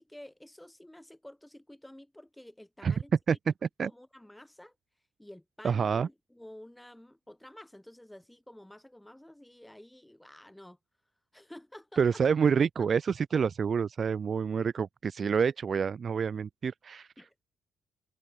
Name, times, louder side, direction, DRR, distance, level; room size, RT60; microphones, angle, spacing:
voice 1, 0.0-3.5 3.8-4.8 5.2-10.8 11.3-12.2 17.2-17.3, left 1 dB, 5° left, 5.3 m, -51 dB
voice 2, 5.6-6.1 12.0-17.1, right 6 dB, 45° right, 1.1 m, -27 dB
cardioid pair, 90°, 0 cm